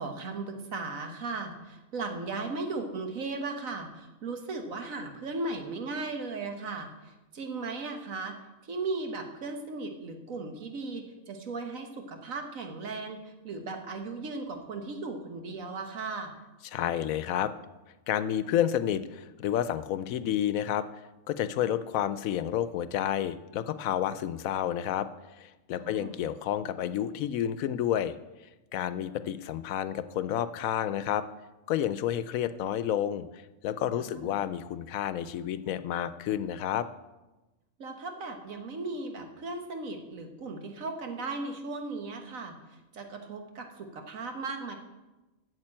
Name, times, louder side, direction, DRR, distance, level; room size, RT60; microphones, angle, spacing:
voice 1, 0.0-8.4 8.6-16.3 25.8-26.2 33.9-34.4 37.8-42.5 42.9-44.7, right 3 dB, 80° right, 5 dB, 1.7 m, -37 dB
voice 2, 16.7-17.5 18.1-20.9 21.3-25.1 25.4-28.1 28.7-31.2 31.7-33.2 33.6-36.9, left 10 dB, 90° left, 13 dB, 1.0 m, -30 dB
9.0 x 6.6 x 8.7 m, 1.1 s
omnidirectional pair, 1.4 m